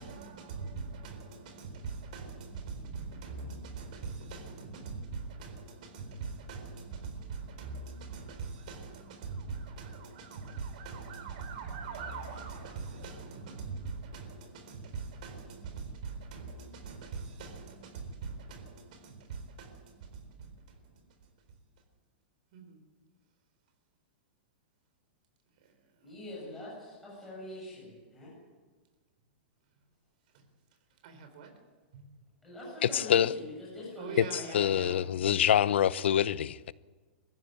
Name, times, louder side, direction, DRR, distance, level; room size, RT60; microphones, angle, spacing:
voice 1, 0.0-21.0 22.5-22.8 25.6-26.1 30.3-30.4 31.0-31.5 31.9-32.1 34.0-35.7, right 4 dB, 45° right, 4.3 m, -42 dB
voice 2, 26.0-28.3 32.4-34.6, left 2 dB, ahead, 8.0 m, -43 dB
voice 3, 32.8-33.3 34.5-36.7, left 10 dB, 85° left, 0.8 m, -26 dB
23.5 x 15.0 x 9.6 m
supercardioid pair, 180°, 6 cm